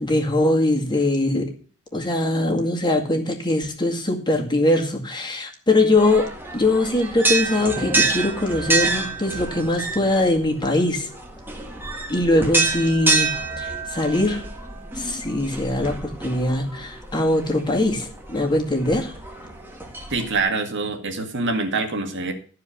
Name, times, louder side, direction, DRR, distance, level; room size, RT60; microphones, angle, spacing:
voice 1, 0.0-1.5 1.9-11.1 12.1-14.4 14.9-19.1, left 2 dB, 20° left, 2 dB, 2.2 m, -22 dB
sound 1, 6.0-20.4, right 3 dB, 10° right, 1.8 m, -27 dB
voice 2, 20.1-22.3, right 3 dB, 55° right, 5 dB, 1.9 m, -25 dB
13.5 x 4.9 x 8.5 m, 0.41 s
head